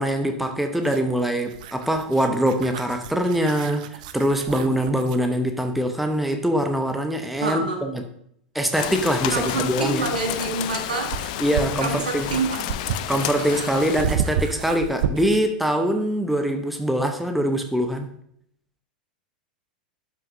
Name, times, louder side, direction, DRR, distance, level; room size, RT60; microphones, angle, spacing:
voice 1, 0.0-8.0 8.5-10.1 11.4-12.3 13.1-18.1, equal, ahead, 5 dB, 0.8 m, -23 dB
sound 1, 0.7-5.3 7.6-7.7 9.7-15.5, right 8 dB, 60° right, 0.7 m, -32 dB
voice 2, 7.4-7.8 9.3-11.1 11.8-12.6, right 4 dB, 75° right, 1 dB, 1.9 m, -27 dB
Rain, 8.7-14.0, left 13 dB, 55° left, 0.4 m, -30 dB
12.0 x 5.9 x 2.7 m, 0.69 s
figure-of-eight pair, 90°, 5 cm